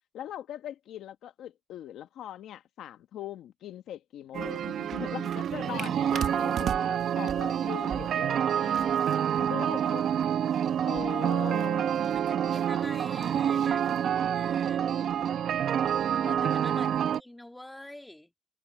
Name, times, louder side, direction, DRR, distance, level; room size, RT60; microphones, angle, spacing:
voice 1, 0.1-8.9 9.4-10.0 10.9-11.9 16.2-16.8, left 11 dB, 80° left, 1.2 m, -41 dB
sound 1, 4.3-17.2, right 9 dB, 65° right, 0.9 m, -27 dB
voice 2, 9.8-10.4 12.1-15.0 16.2-18.3, left 1 dB, 10° left, 2.8 m, -47 dB
cardioid pair, 90°, 0 cm